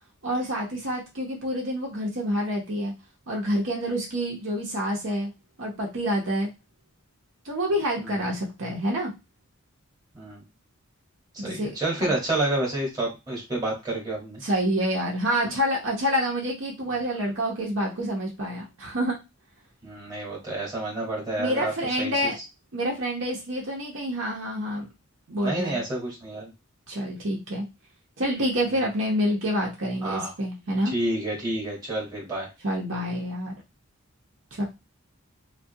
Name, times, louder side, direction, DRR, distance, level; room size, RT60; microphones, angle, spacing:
voice 1, 0.2-2.9 3.3-5.3 5.6-6.5 7.4-9.1 11.4-12.1 14.4-19.2 21.4-22.4 22.7-24.9 25.3-25.8 26.9-27.6 28.2-30.9 32.6-33.6 34.6-34.7, equal, 60° right, -1 dB, 0.7 m, -27 dB
voice 2, 11.3-14.4 19.8-22.3 25.4-26.5 30.0-30.3 30.9-32.5, right 1 dB, 15° right, -3 dB, 1.1 m, -29 dB
2.3 x 2.3 x 2.6 m, 0.25 s
head